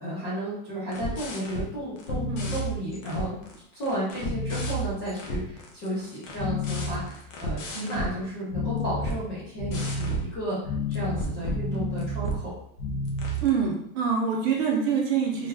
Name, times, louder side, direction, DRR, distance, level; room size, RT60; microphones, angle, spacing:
voice 1, 0.0-10.6 10.9-12.5, equal, 20° left, -9 dB, 0.4 m, -33 dB
sound 1, 0.9-1.7 2.0-3.5 3.8-8.1 8.5-9.2 9.6-10.3 10.6-12.4 12.8-13.5, equal, 60° left, 0.9 m, -30 dB
voice 2, 7.7-8.1 13.4-15.5, right 6 dB, 45° right, 0 dB, 0.7 m, -26 dB
3.3 x 2.3 x 3.3 m, 0.72 s
supercardioid pair, 170°, 45 cm